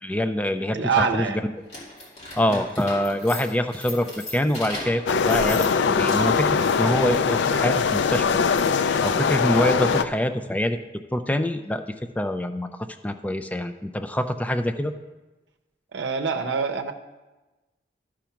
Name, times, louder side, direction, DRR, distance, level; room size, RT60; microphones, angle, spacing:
voice 1, 0.0-1.3 2.4-8.3 9.0-10.8 11.1-11.8 12.2-14.9, left 1 dB, 10° left, 7 dB, 0.3 m, -25 dB
voice 2, 0.7-1.4 2.5-2.6 15.9-16.9, right 5 dB, 75° right, 5 dB, 0.7 m, -25 dB
sound 1, 1.6-6.5, left 1 dB, 35° left, 2.5 m, -37 dB
sound 2, 5.1-10.0, left 5 dB, 75° left, 0.4 m, -22 dB
12.0 x 5.0 x 5.8 m, 1.1 s
head